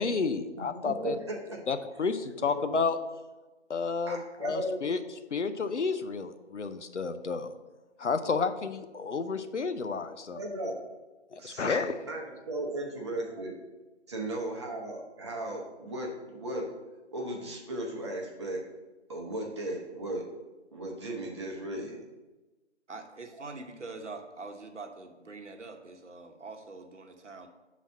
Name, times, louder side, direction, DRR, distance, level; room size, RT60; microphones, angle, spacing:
voice 1, 0.0-1.2 1.7-3.0 3.7-5.0 5.3-7.5 8.0-10.4 11.3-11.9, left 4 dB, 75° left, 9 dB, 0.7 m, -31 dB
voice 2, 0.7-1.6 2.5-2.6 4.1-4.8 10.3-10.8 11.4-13.6 14.1-16.7 17.1-18.6 19.1-20.3 20.7-22.0 23.4-23.5, right 1 dB, 25° right, -1 dB, 0.8 m, -36 dB
voice 3, 22.9-27.5, right 3 dB, 75° right, 5 dB, 1.0 m, -44 dB
5.9 x 4.1 x 6.1 m, 1.2 s
figure-of-eight pair, 150°, 36 cm